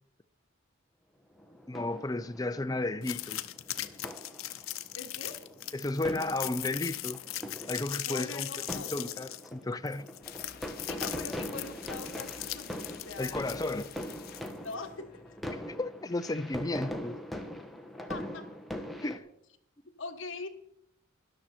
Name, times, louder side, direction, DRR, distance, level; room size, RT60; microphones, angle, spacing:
sound 1, 1.4-19.2, equal, ahead, 1.0 m, -42 dB
voice 1, 1.7-3.4 5.7-7.2 7.7-8.5 8.8-10.1 13.2-13.9 15.5-17.2 19.0-19.3, left 2 dB, 20° left, 0.5 m, -33 dB
sound 2, 3.0-14.7, left 14 dB, 85° left, 0.7 m, -39 dB
voice 2, 4.9-5.4 8.1-8.9 10.9-13.6 14.6-15.1 18.1-18.5 20.0-20.5, left 3 dB, 65° left, 1.4 m, -42 dB
sound 3, 10.2-15.8, left 5 dB, 50° left, 1.0 m, -52 dB
13.0 x 11.0 x 4.4 m
head